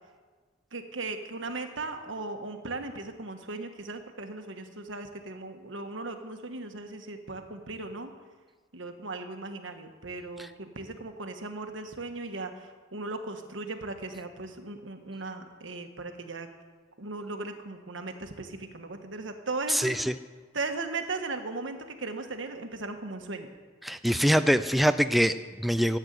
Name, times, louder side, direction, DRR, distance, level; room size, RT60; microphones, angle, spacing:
voice 1, 0.7-8.1 8.7-16.5 17.0-19.9 20.5-23.5, right 3 dB, 80° right, 6 dB, 1.4 m, -37 dB
voice 2, 19.7-20.1 23.8-26.0, equal, ahead, 10 dB, 0.4 m, -24 dB
14.0 x 8.1 x 9.4 m, 1.4 s
head